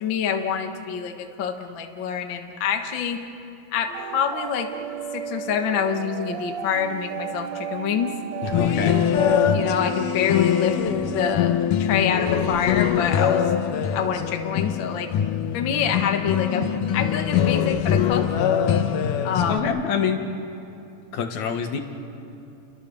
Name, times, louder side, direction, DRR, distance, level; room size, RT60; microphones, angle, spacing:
voice 1, 0.0-3.2 3.7-4.7 5.1-8.1 9.5-10.8 11.1-13.5 13.9-15.1 15.5-16.7 16.9-18.2 19.2-19.7, left 7 dB, 50° left, 4 dB, 1.6 m, -26 dB
sound 1, 3.9-11.4, right 7 dB, 70° right, 1.9 m, -34 dB
voice 2, 8.4-9.0 19.5-20.2 21.1-21.8, left 7 dB, 65° left, 5 dB, 2.7 m, -25 dB
sound 2, 8.5-19.6, left 9 dB, 90° left, 2.6 m, -23 dB
30.0 x 22.5 x 7.1 m, 2.7 s
omnidirectional pair, 3.6 m